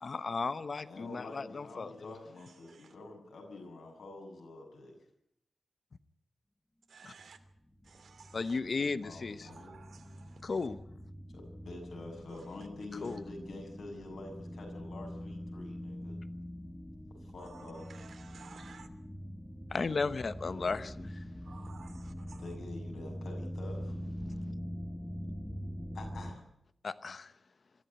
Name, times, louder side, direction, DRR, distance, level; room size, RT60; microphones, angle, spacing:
voice 1, 0.0-2.1 7.0-7.1 8.3-9.5 10.4-10.8 13.0-13.2 19.7-21.2 26.8-27.3, left 4 dB, 40° left, 0.9 m, -35 dB
voice 2, 0.8-4.9 8.8-9.8 11.3-16.2 17.3-17.8 20.4-20.8 22.4-24.0 25.9-26.4, left 2 dB, 80° left, 7.3 m, -47 dB
voice 3, 2.4-2.9 6.9-7.4 7.8-8.6 9.4-10.6 12.3-12.5 13.0-13.2 17.4-18.9 21.4-22.4, right 5 dB, 75° right, 2.8 m, -55 dB
sound 1, 7.4-26.3, equal, 5° left, 1.6 m, -44 dB
24.5 x 14.5 x 9.3 m
wide cardioid pair, 180°, 0 cm